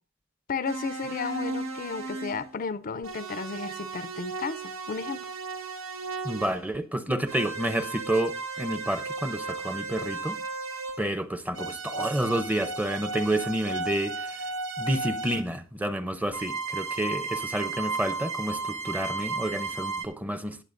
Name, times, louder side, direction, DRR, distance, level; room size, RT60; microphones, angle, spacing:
voice 1, 0.5-5.3, left 5 dB, 45° left, 0.5 m, -33 dB
sound 1, 0.6-2.5 3.0-6.6 7.2-11.2 11.5-15.5 16.3-20.0, right 3 dB, 85° right, 1.4 m, -34 dB
voice 2, 6.2-10.4 11.0-14.4 14.8-20.6, right 1 dB, 10° right, 0.6 m, -29 dB
18.0 x 7.3 x 2.5 m
head